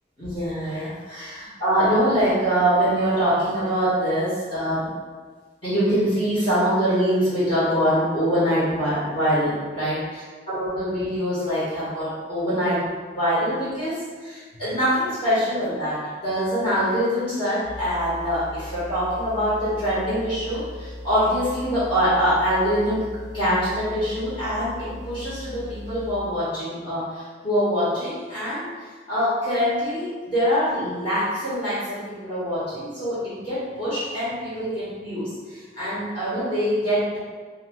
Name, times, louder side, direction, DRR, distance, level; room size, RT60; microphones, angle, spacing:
voice 1, 0.2-4.9 5.6-10.2 10.5-28.7 29.1-37.2, equal, 30° left, -12 dB, 1.0 m, -24 dB
sound 1, 17.6-26.3, equal, 85° left, 0.6 m, -38 dB
2.9 x 2.2 x 3.4 m, 1.5 s
head